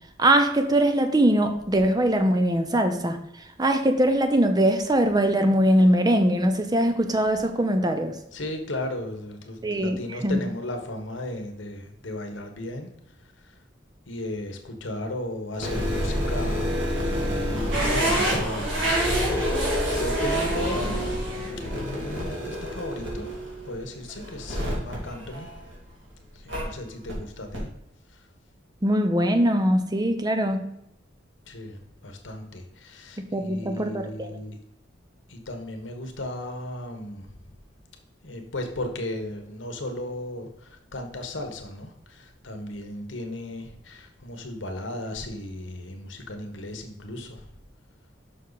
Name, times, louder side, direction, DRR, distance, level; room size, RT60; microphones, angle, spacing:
voice 1, 0.2-3.2 3.6-8.1 9.6-10.4 28.8-30.6 33.3-34.3, right 1 dB, 20° right, 0.7 m, -22 dB
voice 2, 8.3-12.9 13.4-13.5 14.1-16.8 17.2-19.5 20.0-21.1 21.7-23.3 23.6-25.5 26.3-27.7 28.1-28.3 31.5-34.6 35.3-37.3 38.2-47.5, left 1 dB, 90° left, 1.3 m, -35 dB
sound 1, 15.5-25.9 26.5-26.6 27.1-27.2 27.5-27.6, left 1 dB, 70° right, 2.6 m, -29 dB
sound 2, 17.7-23.8, right 2 dB, 90° right, 2.9 m, -29 dB
6.5 x 5.9 x 4.0 m
head